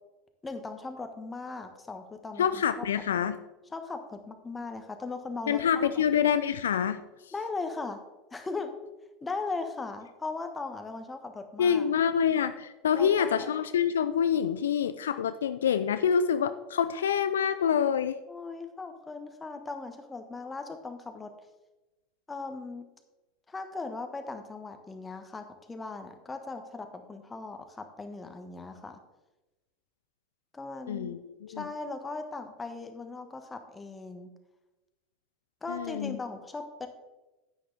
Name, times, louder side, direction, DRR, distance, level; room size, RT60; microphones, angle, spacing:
voice 1, 0.4-2.8 3.7-5.9 7.3-8.0 8.3-8.7 9.2-11.8 12.9-13.5 18.3-21.3 22.3-22.9 23.5-29.0 30.5-31.1 31.6-34.3 35.6-36.9, left 3 dB, 15° left, 7 dB, 1.4 m, -38 dB
voice 2, 2.4-3.4 5.5-7.0 11.6-18.2 30.9-31.7 35.7-36.2, left 8 dB, 75° left, 11 dB, 0.4 m, -26 dB
10.0 x 9.6 x 3.4 m, 1.1 s
figure-of-eight pair, 80°, 0 cm